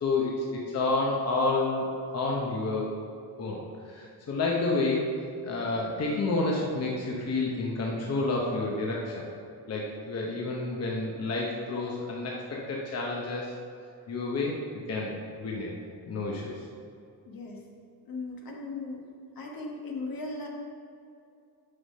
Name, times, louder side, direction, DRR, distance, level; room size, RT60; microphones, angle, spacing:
voice 1, 0.0-1.8 2.1-2.9 3.4-3.6 3.9-5.0 5.4-9.1 9.7-13.5 14.1-14.6 14.9-15.1 15.4-15.7 16.0-16.5, left 3 dB, 40° left, -2 dB, 0.9 m, -29 dB
voice 2, 17.2-17.6 18.0-19.0 19.4-20.5, left 3 dB, 60° left, 0 dB, 1.3 m, -37 dB
6.7 x 5.7 x 5.5 m, 2.4 s
cardioid pair, 150°, 40 cm